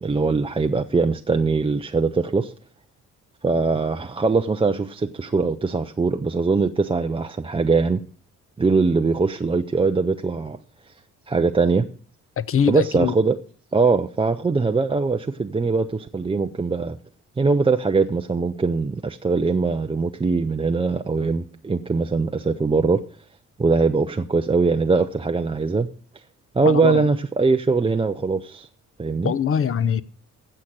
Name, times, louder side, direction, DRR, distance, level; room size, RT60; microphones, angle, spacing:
voice 1, 0.0-2.5 3.4-8.0 8.6-10.6 11.3-11.9 12.7-13.4 13.7-17.0 17.4-23.0 23.6-25.9 26.5-28.7 29.0-29.3, right 4 dB, 10° right, 0.5 m, -21 dB
voice 2, 12.4-13.1 26.6-27.1 29.2-30.0, left 7 dB, 30° left, 0.7 m, -22 dB
15.5 x 6.4 x 6.2 m
hypercardioid pair, 50°, 44 cm